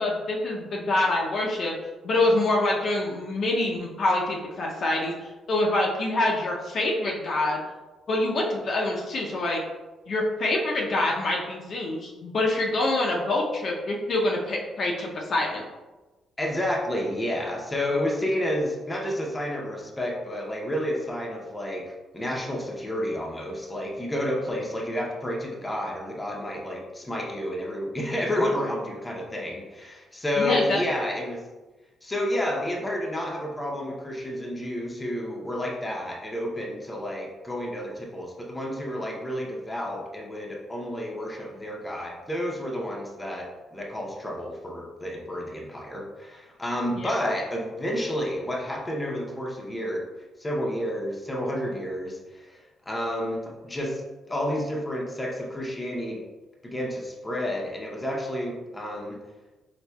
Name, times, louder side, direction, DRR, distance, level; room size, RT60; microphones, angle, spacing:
voice 1, 0.0-1.7 2.0-7.6 8.1-9.6 10.1-15.6 30.4-30.8 47.0-47.1, left 2 dB, 55° left, -2 dB, 0.6 m, -25 dB
voice 2, 16.4-21.8 22.1-31.4 32.0-50.0 50.4-52.6 52.9-56.2 56.6-59.2, left 1 dB, 15° left, -1 dB, 0.7 m, -30 dB
4.1 x 2.6 x 2.3 m, 1.2 s
cardioid pair, 90°, 0 cm